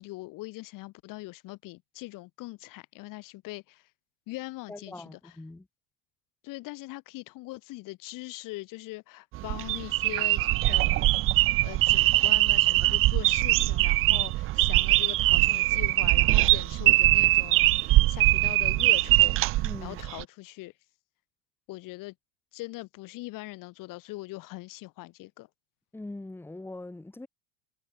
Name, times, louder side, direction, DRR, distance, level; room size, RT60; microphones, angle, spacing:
voice 1, 0.0-3.9 4.3-5.3 6.4-11.1 11.6-20.7 21.7-22.1 22.5-25.5, left 20 dB, 55° left, 2.6 m, -41 dB
voice 2, 4.7-5.7 14.1-14.3 19.6-20.0 25.9-27.3, left 2 dB, 5° left, 2.6 m, -42 dB
sound 1, 9.3-20.2, right 18 dB, 35° right, 0.4 m, -22 dB
cardioid pair, 150°, 39 cm